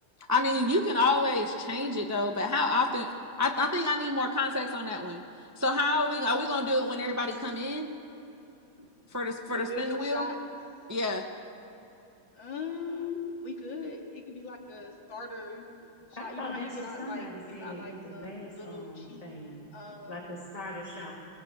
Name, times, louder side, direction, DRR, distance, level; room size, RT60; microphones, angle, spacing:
voice 1, 0.3-3.1 3.4-5.2 5.6-7.9 9.1-10.3 10.9-11.2, left 2 dB, 15° right, 3 dB, 0.7 m, -28 dB
voice 2, 9.5-10.4 12.4-15.7 16.2-19.2 19.7-20.2, left 3 dB, 70° left, 1 dB, 3.0 m, -39 dB
voice 3, 16.2-19.6 20.1-21.1, left 1 dB, 20° left, -3 dB, 2.1 m, -41 dB
21.0 x 20.0 x 8.2 m, 3.0 s
omnidirectional pair, 2.2 m